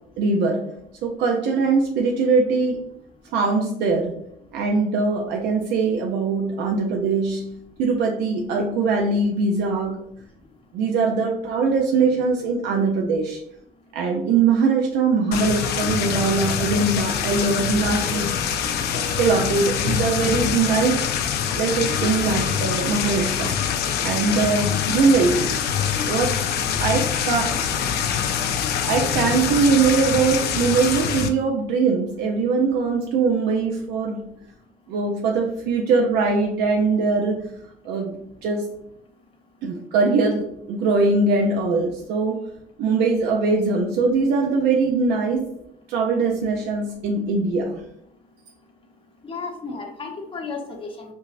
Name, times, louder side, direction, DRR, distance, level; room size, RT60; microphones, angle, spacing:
voice 1, 0.2-0.7 1.0-2.8 3.3-4.2 4.5-7.5 7.8-10.1 10.7-13.4 13.9-18.6 18.9-21.0 21.6-23.6 24.0-25.5 26.0-26.4 26.8-27.6 28.9-34.3 34.9-37.4 37.8-38.7 39.6-42.4 42.8-45.5 45.9-47.8, right 4 dB, 85° right, 1 dB, 0.5 m, -21 dB
sound 1, 15.3-31.3, left 8 dB, 70° left, 0.5 m, -24 dB
voice 2, 49.2-51.1, left 4 dB, 30° left, 2 dB, 0.8 m, -33 dB
5.3 x 2.0 x 2.4 m, 0.72 s
cardioid pair, 110°, 17 cm